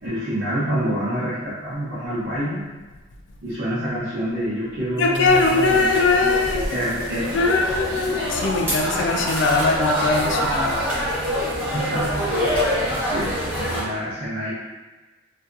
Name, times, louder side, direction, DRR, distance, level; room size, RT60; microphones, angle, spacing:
voice 1, 0.0-2.7 3.4-5.9 6.7-7.4 8.1-8.2 11.5-12.3 13.1-14.5, equal, 55° right, -12 dB, 0.7 m, -27 dB
voice 2, 5.0-6.7 7.3-10.8 11.0-11.2, left 3 dB, 65° left, 2 dB, 0.3 m, -20 dB
sound 1, 5.2-13.8, equal, 10° right, 0.6 m, -25 dB
2.7 x 2.2 x 2.4 m, 1.2 s
head